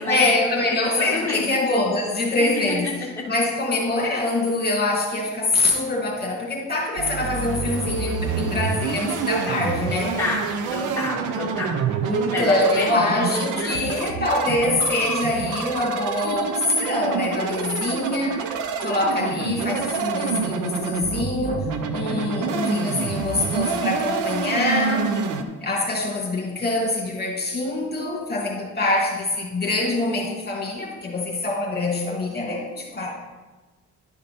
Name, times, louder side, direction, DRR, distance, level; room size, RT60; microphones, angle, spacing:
voice 1, 0.0-2.9 3.3-10.2 12.0-18.4 18.8-21.7 21.9-25.1 25.6-33.1, left 2 dB, 35° left, -2 dB, 2.5 m, -24 dB
voice 2, 0.7-1.4 2.7-2.8 3.2-3.3 10.2-11.9 12.3-13.8 22.0-22.2, left 2 dB, 10° left, -6 dB, 2.2 m, -29 dB
sound 1, 7.0-25.4, right 6 dB, 85° right, 0.8 m, -27 dB
11.0 x 5.3 x 4.4 m, 1.2 s
cardioid pair, 90°, 30 cm